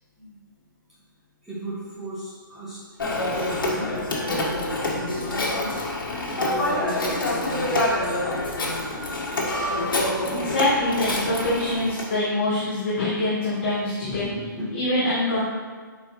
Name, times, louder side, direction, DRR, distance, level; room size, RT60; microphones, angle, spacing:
voice 1, 1.4-3.0 3.3-9.1 14.0-14.7, equal, 5° right, -10 dB, 1.0 m, -35 dB
Telephone, 3.0-12.1, left 1 dB, 75° left, 1.7 m, -26 dB
voice 2, 10.3-14.2 14.7-15.4, left 1 dB, 35° left, -8 dB, 1.3 m, -24 dB
7.8 x 4.3 x 3.2 m, 1.5 s
hypercardioid pair, 175°, 11 cm